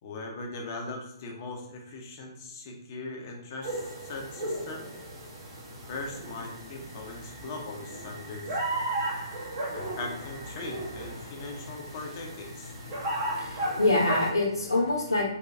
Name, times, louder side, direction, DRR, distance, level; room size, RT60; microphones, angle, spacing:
voice 1, 0.0-4.9 5.9-8.6 9.7-12.7, left 3 dB, 40° left, 1 dB, 0.9 m, -40 dB
sound 1, 3.6-14.3, right 1 dB, 40° right, 1.5 m, -35 dB
voice 2, 12.9-15.3, left 2 dB, 85° left, -8 dB, 1.2 m, -26 dB
4.2 x 3.0 x 3.5 m, 0.80 s
figure-of-eight pair, 125°, 2 cm